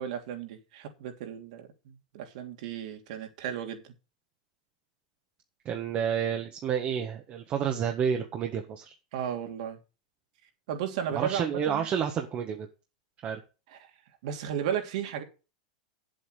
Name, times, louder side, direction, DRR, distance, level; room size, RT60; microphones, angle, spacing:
voice 1, 0.0-3.8 9.1-9.8 10.7-11.9 13.7-13.8 14.2-15.2, right 9 dB, 65° right, 3.0 m, -34 dB
voice 2, 5.6-8.9 11.1-12.7 13.2-13.4, right 8 dB, 35° right, 1.5 m, -30 dB
8.5 x 8.0 x 6.8 m
hypercardioid pair, 120°, 4 cm